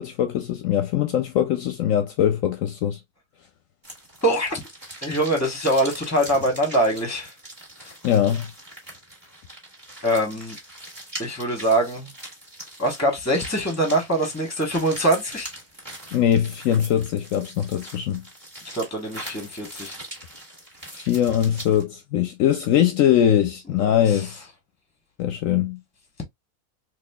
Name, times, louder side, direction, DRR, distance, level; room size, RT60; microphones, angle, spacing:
voice 1, 0.0-3.0 8.0-8.5 16.1-18.2 20.9-24.4 25.2-25.8, left 10 dB, 70° left, 0.9 m, -22 dB
sound 1, 3.8-21.8, right 1 dB, 15° right, 1.5 m, -41 dB
voice 2, 4.2-4.6 5.0-7.3 7.8-7.9 10.0-10.6 11.2-12.1 12.8-15.5 18.7-20.0 23.9-24.3, right 1 dB, 10° left, 1.0 m, -23 dB
4.1 x 2.9 x 2.2 m
omnidirectional pair, 1.5 m